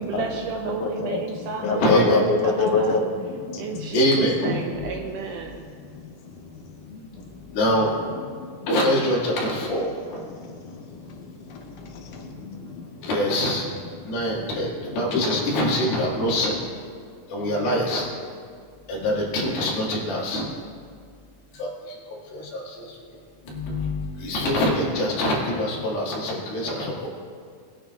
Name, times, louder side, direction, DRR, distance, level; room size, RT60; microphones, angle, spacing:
voice 1, 0.0-3.0 3.6-5.6, right 6 dB, 85° right, 2 dB, 1.9 m, -32 dB
voice 2, 0.7-3.9 5.8-7.6 8.2-8.6 10.3-13.1 14.2-14.5 15.1-15.2, left 3 dB, 70° left, 3 dB, 2.2 m, -28 dB
voice 3, 1.8-2.2 3.9-4.9 7.5-7.9 8.7-10.4 13.0-13.6 14.0-16.6 17.3-18.1 18.9-20.5 21.5-23.2 23.4-27.1, equal, 90° left, -4 dB, 4.0 m, -24 dB
20.0 x 9.2 x 2.4 m, 2.1 s
omnidirectional pair, 4.2 m